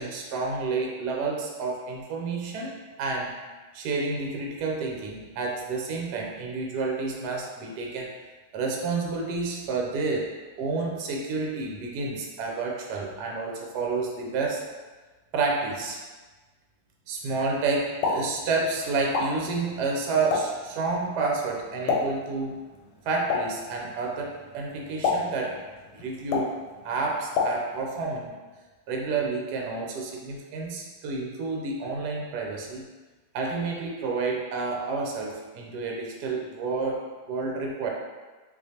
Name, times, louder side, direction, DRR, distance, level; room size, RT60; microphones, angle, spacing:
voice 1, 0.0-3.3 3.7-8.1 8.5-14.6 15.3-16.0 17.1-22.6 23.0-25.7 25.9-26.5 26.8-28.4 28.9-32.8 33.3-37.9, right 3 dB, 75° right, -1 dB, 0.9 m, -30 dB
Explosion, 17.8-28.0, left 4 dB, 85° left, 1.4 m, -32 dB
4.2 x 2.5 x 2.8 m, 1.3 s
omnidirectional pair, 2.3 m